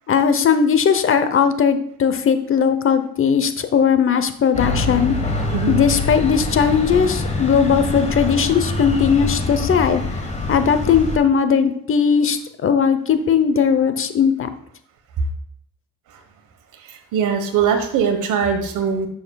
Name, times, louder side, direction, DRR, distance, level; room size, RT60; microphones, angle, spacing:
voice 1, 0.1-5.1 5.7-10.2 10.5-14.5, left 7 dB, 45° left, 10 dB, 0.8 m, -18 dB
sound 1, 4.5-11.2, left 2 dB, 20° left, 1.3 m, -24 dB
voice 2, 16.9-19.1, right 7 dB, 85° right, 5 dB, 1.3 m, -21 dB
10.5 x 6.3 x 2.3 m, 0.67 s
cardioid pair, 90°, 30 cm